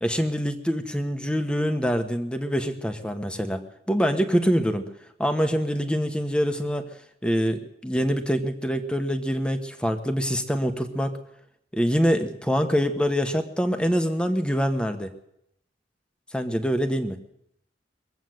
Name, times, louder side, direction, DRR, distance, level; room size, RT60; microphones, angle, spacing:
voice 1, 0.0-4.9 5.2-6.8 7.2-11.2 11.7-15.1 16.3-17.2, equal, 5° left, 7 dB, 1.2 m, -25 dB
22.5 x 8.2 x 7.8 m, 0.79 s
head